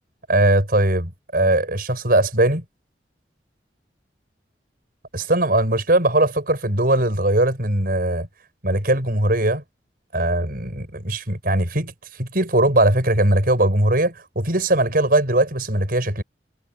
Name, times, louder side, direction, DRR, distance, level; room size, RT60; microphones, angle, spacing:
voice 1, 0.3-2.6 5.1-8.3 8.6-9.6 10.1-16.2, right 1 dB, 55° right, 6.4 m, -20 dB
head